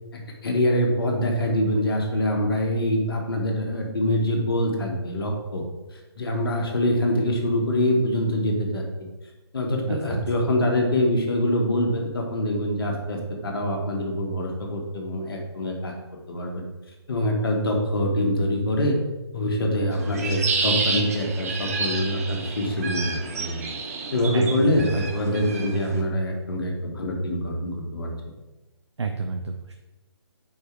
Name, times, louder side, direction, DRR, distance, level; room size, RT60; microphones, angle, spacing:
voice 1, 0.1-5.6 6.2-8.8 9.5-15.9 16.3-16.6 17.1-19.0 19.3-23.6 24.1-28.1, left 1 dB, 55° left, 0 dB, 1.7 m, -24 dB
voice 2, 9.8-10.2 24.3-24.8 29.0-29.7, right 5 dB, 80° right, 4 dB, 0.7 m, -29 dB
sound 1, 19.9-26.0, right 4 dB, 35° right, 0.7 m, -30 dB
5.4 x 4.7 x 4.8 m, 1.1 s
figure-of-eight pair, 160°, 14 cm